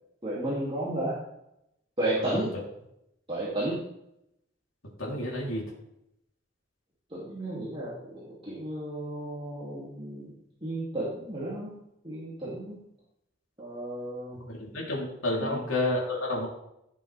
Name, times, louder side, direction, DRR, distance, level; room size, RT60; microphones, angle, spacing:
voice 1, 0.2-1.2 2.0-2.5 3.3-3.8 7.1-10.3 10.6-11.7 12.0-12.8 13.6-14.4 15.4-15.7, right 1 dB, 25° right, -8 dB, 2.7 m, -33 dB
voice 2, 5.0-5.6 14.5-16.5, left 1 dB, 85° left, -3 dB, 3.6 m, -30 dB
16.0 x 7.0 x 3.5 m, 0.79 s
head